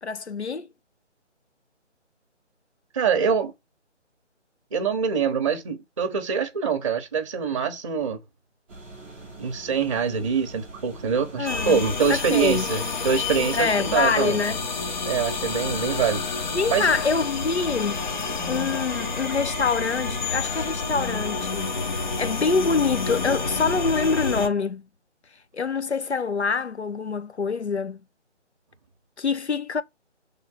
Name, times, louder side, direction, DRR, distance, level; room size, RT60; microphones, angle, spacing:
voice 1, 0.0-0.7 11.4-11.8 12.1-12.7 13.5-14.6 16.5-18.0 18.5-21.8 22.2-24.8 25.5-28.0 29.2-29.8, left 5 dB, 65° left, 1.1 m, -25 dB
voice 2, 2.9-3.5 4.7-8.2 9.4-14.4 15.1-16.2 16.7-16.9, right 6 dB, 25° right, 1.0 m, -24 dB
sound 1, 8.7-23.8, right 2 dB, 5° right, 0.8 m, -43 dB
sound 2, 11.4-24.5, left 4 dB, 40° left, 1.3 m, -29 dB
6.8 x 3.7 x 5.7 m
figure-of-eight pair, 150°, 36 cm